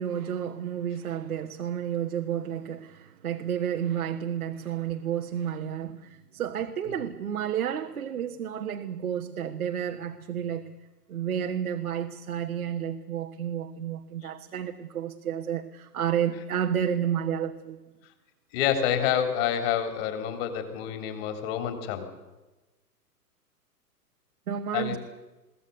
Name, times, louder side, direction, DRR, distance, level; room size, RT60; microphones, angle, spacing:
voice 1, 0.0-10.7 11.1-17.9 24.5-25.0, right 9 dB, 60° right, 1.5 m, -31 dB
voice 2, 18.5-22.1 24.7-25.0, left 9 dB, 35° left, 3.7 m, -28 dB
22.5 x 17.5 x 8.1 m
figure-of-eight pair, 110°, 49 cm